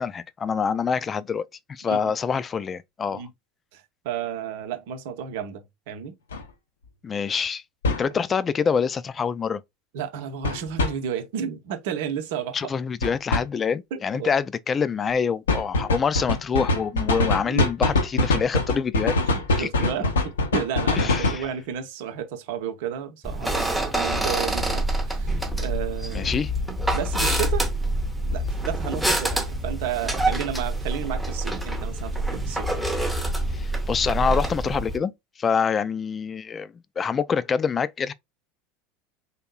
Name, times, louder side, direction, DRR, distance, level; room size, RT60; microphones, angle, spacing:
voice 1, 0.0-3.2 7.0-7.6 8.0-9.6 12.5-19.2 19.6-19.7 21.0-21.4 26.1-26.5 33.5-35.1 35.4-38.1, left 6 dB, 30° left, 0.3 m, -26 dB
voice 2, 3.7-6.2 9.9-12.6 13.9-14.3 17.4-17.6 19.2-26.4 26.9-27.7 28.3-32.8, right 8 dB, 65° right, 0.7 m, -32 dB
sound 1, 6.3-6.4 7.8-8.1 10.4-10.9 13.0-13.4 15.5-21.5, left 2 dB, 75° left, 0.6 m, -23 dB
sound 2, 23.2-35.0, right 1 dB, 5° right, 0.8 m, -26 dB
3.5 x 2.7 x 2.3 m
figure-of-eight pair, 75°, 0 cm